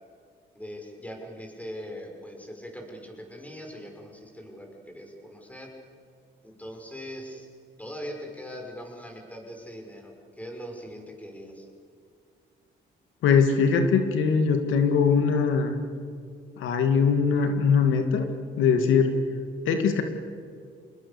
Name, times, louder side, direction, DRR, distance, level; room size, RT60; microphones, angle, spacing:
voice 1, 0.5-5.7 6.4-7.5 7.8-11.7, equal, 5° left, 2 dB, 6.1 m, -41 dB
voice 2, 13.2-15.7 16.6-18.3 18.6-19.1 19.7-20.0, left 6 dB, 85° left, 6 dB, 2.0 m, -21 dB
27.5 x 20.0 x 7.1 m, 2.2 s
cardioid pair, 90°, 20 cm